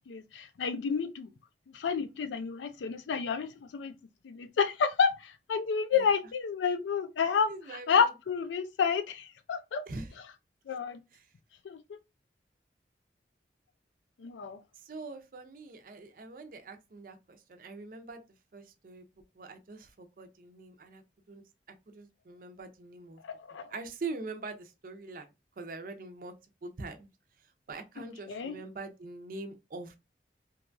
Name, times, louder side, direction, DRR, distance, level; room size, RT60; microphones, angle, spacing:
voice 1, 0.1-1.3 1.7-3.5 3.7-3.9 4.2-7.5 7.9-9.8 10.7-11.0 11.6-12.0 14.2-14.6 23.5-23.7 28.3-28.6, left 6 dB, 90° left, 0.4 m, -30 dB
voice 2, 7.5-8.1 9.9-10.1 11.1-11.2 14.8-18.2 18.5-19.0 19.4-21.0 21.3-21.4 21.9-23.2 23.7-25.3 25.6-26.3 26.6-27.1 27.7-30.0, right 3 dB, 50° right, 0.4 m, -43 dB
2.9 x 2.2 x 2.5 m
head